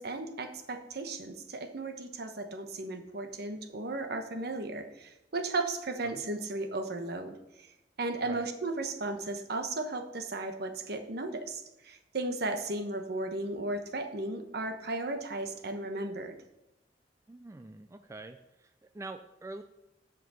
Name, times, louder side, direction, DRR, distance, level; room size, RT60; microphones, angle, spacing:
voice 1, 0.0-7.7 8.0-16.3, right 2 dB, 60° right, 6 dB, 1.1 m, -35 dB
voice 2, 17.3-19.6, right 2 dB, 15° right, 8 dB, 0.3 m, -45 dB
7.7 x 5.9 x 6.8 m, 0.91 s
head